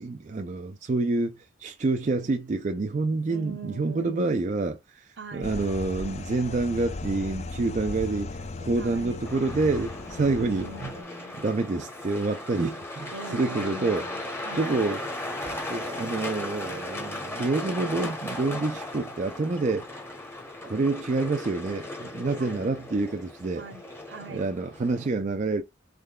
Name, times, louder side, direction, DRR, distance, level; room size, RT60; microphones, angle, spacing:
voice 1, 0.0-10.9 11.4-14.1 14.5-15.0 15.4-19.9 20.6-23.6 24.3-25.6, right 3 dB, 40° right, 0.4 m, -28 dB
voice 2, 3.3-4.5 5.2-5.5 8.8-9.3 10.4-11.3 13.1-14.9 22.4-22.7 23.6-24.5, right 2 dB, 65° right, 0.7 m, -42 dB
sound 1, 5.4-11.0, left 3 dB, 35° left, 0.4 m, -37 dB
Truck, 9.2-25.1, left 1 dB, 10° left, 0.9 m, -37 dB
3.6 x 3.3 x 2.2 m
head